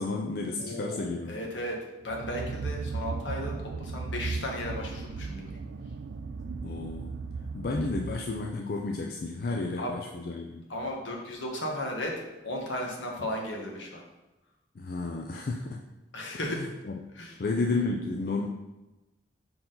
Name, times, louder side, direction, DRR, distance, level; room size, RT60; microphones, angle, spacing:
voice 1, 0.0-1.5 6.6-7.2 7.5-10.6 14.7-15.8 16.5-16.9 17.4-18.5, left 3 dB, 50° left, 1 dB, 0.4 m, -32 dB
voice 2, 0.6-1.8 2.0-5.5 7.7-7.8 9.4-9.9 10.7-14.0 16.1-16.6 17.1-17.4, left 1 dB, 80° left, 0 dB, 1.3 m, -35 dB
sound 1, 2.0-8.6, right 4 dB, 65° right, 0.3 m, -36 dB
5.6 x 4.5 x 3.8 m, 1.0 s
head